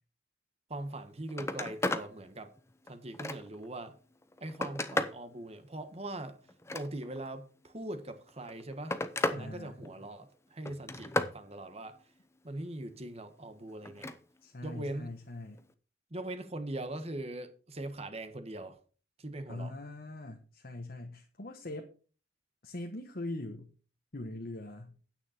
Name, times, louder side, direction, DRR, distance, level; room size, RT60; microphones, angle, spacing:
voice 1, 0.7-2.5 2.9-4.0 4.4-6.4 6.7-9.0 9.3-12.0 12.4-14.1 14.6-15.1 16.1-18.8 19.2-19.7, right 1 dB, 35° right, 1.3 m, -41 dB
Telephone, 0.9-1.0 1.3-2.1 2.6-3.7 4.2-5.2 6.5-7.3 8.3-9.4 9.8-10.2 10.7-11.4 13.8-14.2 15.6-15.7, left 2 dB, 15° left, 0.7 m, -34 dB
voice 2, 9.4-9.8 14.4-15.6 19.5-21.9 22.6-23.7 24.1-25.0, left 2 dB, 50° left, 1.2 m, -42 dB
9.6 x 9.0 x 4.4 m
head